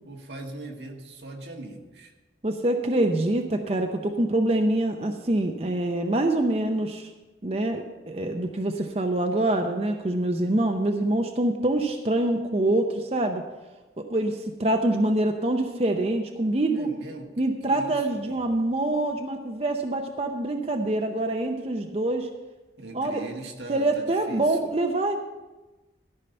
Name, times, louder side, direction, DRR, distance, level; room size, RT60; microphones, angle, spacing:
voice 1, 0.0-2.1 16.7-17.3 17.6-18.6 22.8-24.7, right 2 dB, 85° right, 2 dB, 1.5 m, -40 dB
voice 2, 2.4-7.1 7.4-13.5 14.0-16.9 17.4-22.3 22.9-23.2 23.7-25.1, right 1 dB, 35° right, 4 dB, 0.6 m, -25 dB
13.5 x 5.7 x 6.7 m, 1.2 s
head